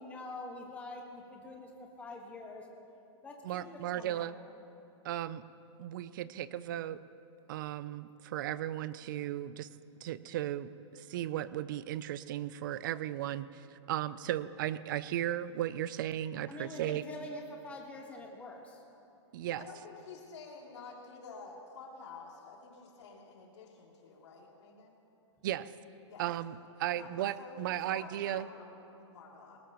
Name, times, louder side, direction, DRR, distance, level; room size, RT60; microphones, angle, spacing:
voice 1, 0.0-2.7 3.2-3.7 3.9-4.2 16.5-18.8, left 2 dB, 10° left, 0 dB, 1.4 m, -45 dB
voice 2, 3.4-4.3 5.0-5.4 5.8-7.0 7.5-9.7 10.0-17.0 19.3-19.7 25.4-25.7 26.2-28.5, right 12 dB, 45° right, 16 dB, 0.5 m, -36 dB
voice 3, 19.6-25.0 26.1-26.2 26.9-27.1 27.4-29.6, left 4 dB, 65° left, -1 dB, 2.9 m, -50 dB
20.0 x 19.5 x 3.0 m, 2.9 s
hypercardioid pair, 165°, 16 cm